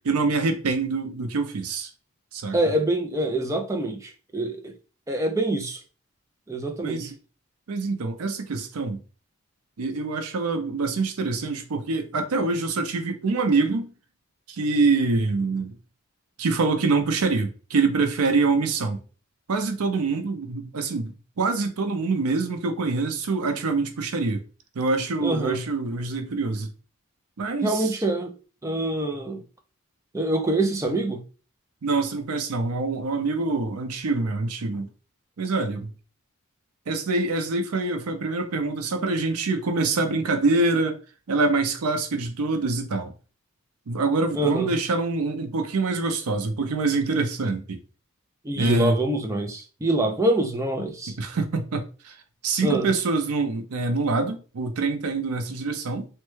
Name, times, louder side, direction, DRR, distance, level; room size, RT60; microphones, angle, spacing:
voice 1, 0.0-1.9 2.3-2.6 6.8-7.1 7.7-9.0 9.8-13.9 14.5-15.7 16.4-19.0 19.5-24.4 24.8-26.7 27.4-28.0 31.8-34.9 35.4-35.9 36.9-41.0 41.3-43.1 43.9-47.8 48.6-49.0 51.2-52.2 52.4-56.1, right 3 dB, 90° right, 0.5 m, -25 dB
voice 2, 2.5-4.7 5.1-5.8 6.5-7.1 25.2-25.6 27.6-28.3 28.6-29.4 30.1-31.2 44.3-44.7 48.4-51.1 52.6-52.9, right 1 dB, 15° right, 0.4 m, -25 dB
3.2 x 2.2 x 3.1 m
head